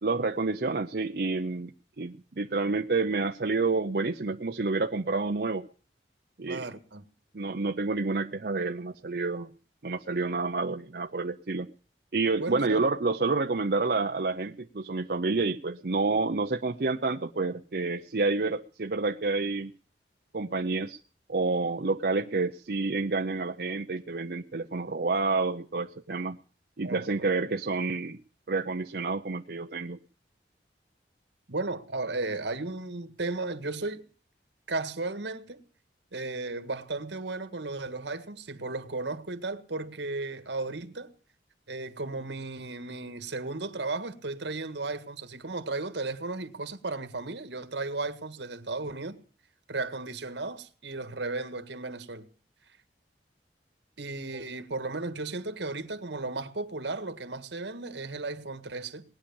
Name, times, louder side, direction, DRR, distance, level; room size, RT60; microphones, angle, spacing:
voice 1, 0.0-1.7 2.0-5.7 6.4-6.7 7.3-9.5 9.8-11.7 12.1-19.7 20.3-21.0 21.3-26.4 26.8-28.2 28.5-30.0, right 3 dB, 60° right, 0.7 m, -29 dB
voice 2, 6.5-7.0 12.4-12.8 26.8-27.3 31.5-34.0 34.7-35.6 36.1-41.1 41.7-49.2 49.7-52.3 54.0-59.0, right 3 dB, 85° right, 1.7 m, -35 dB
19.5 x 10.0 x 7.1 m
head